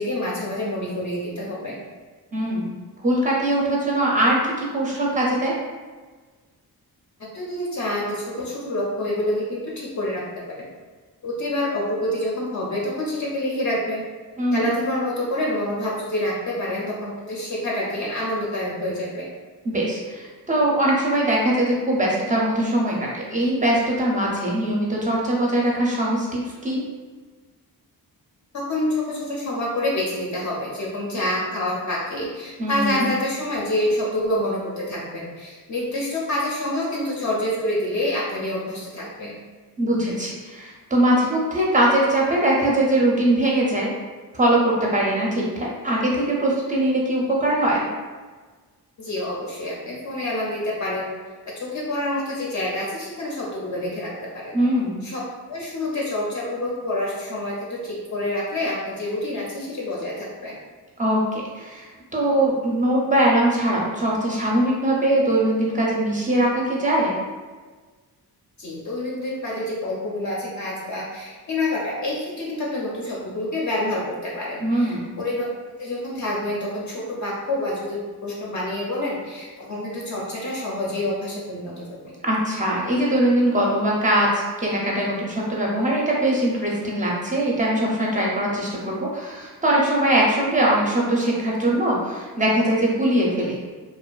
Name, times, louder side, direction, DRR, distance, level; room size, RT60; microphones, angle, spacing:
voice 1, 0.0-1.8 7.3-10.7 11.2-14.0 14.5-19.3 28.5-39.4 49.0-51.1 51.5-54.6 55.0-55.2 55.5-60.6 68.6-75.5 75.8-82.1, left 1 dB, 50° left, -4 dB, 0.5 m, -27 dB
voice 2, 2.3-2.8 3.0-5.5 14.4-14.7 19.6-26.8 32.6-33.1 39.8-43.9 44.3-47.9 54.5-55.0 61.0-61.9 62.1-67.1 74.6-75.1 82.2-93.6, right 1 dB, 20° right, -4 dB, 0.4 m, -21 dB
2.5 x 2.4 x 2.2 m, 1.4 s
wide cardioid pair, 145°, 38 cm